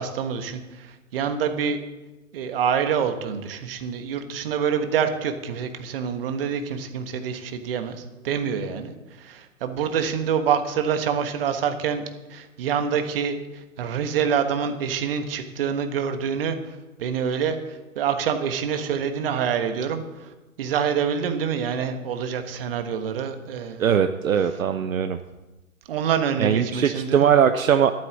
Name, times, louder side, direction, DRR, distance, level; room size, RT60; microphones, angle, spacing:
voice 1, 0.0-1.8 2.3-12.0 12.3-20.3 20.6-23.8 25.9-27.3, right 7 dB, 40° right, 8 dB, 1.4 m, -26 dB
voice 2, 23.8-25.2 26.4-27.9, right 8 dB, 65° right, 9 dB, 0.8 m, -20 dB
12.5 x 8.8 x 7.3 m, 1.1 s
figure-of-eight pair, 135°, 44 cm